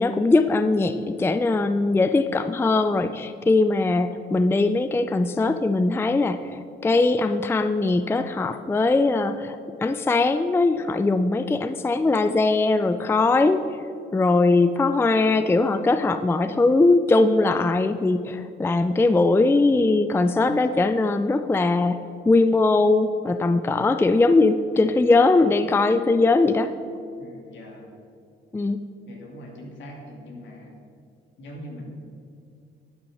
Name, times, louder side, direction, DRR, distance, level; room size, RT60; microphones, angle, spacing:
voice 1, 0.0-13.8 14.1-22.0 22.3-26.7 28.5-28.8, left 3 dB, 10° left, 11 dB, 0.4 m, -20 dB
voice 2, 27.2-27.9 29.1-30.7 31.4-31.9, left 1 dB, 70° left, 0 dB, 2.5 m, -41 dB
11.5 x 6.2 x 6.5 m, 2.4 s
cardioid pair, 90°, 20 cm